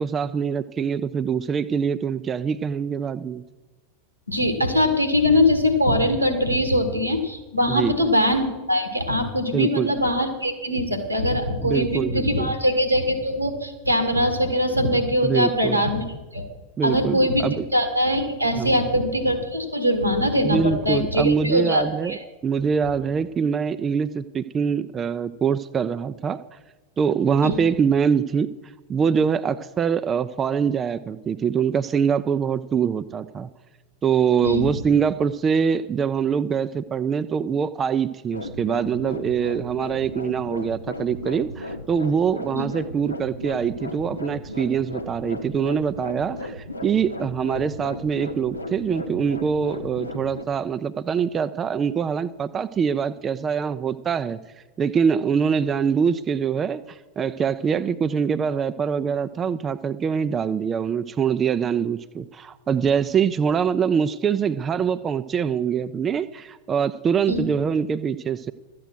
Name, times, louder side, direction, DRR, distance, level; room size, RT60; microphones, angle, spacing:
voice 1, 0.0-3.4 7.7-8.1 9.5-9.9 11.6-12.5 15.2-15.8 16.8-17.6 18.5-18.8 20.4-22.2 22.4-26.4 27.0-28.5 28.9-33.5 34.0-54.4 54.8-68.5, right 7 dB, 20° right, 12 dB, 0.4 m, -24 dB
voice 2, 4.3-16.0 16.3-16.4 16.8-22.2 27.4-27.6 34.4-34.7 42.5-42.6 67.3-67.4, left 1 dB, 90° right, 8 dB, 1.6 m, -22 dB
sound 1, 38.3-50.4, left 1 dB, 85° left, 0.8 m, -35 dB
12.5 x 9.1 x 6.0 m, 1.2 s
figure-of-eight pair, 90°, 0 cm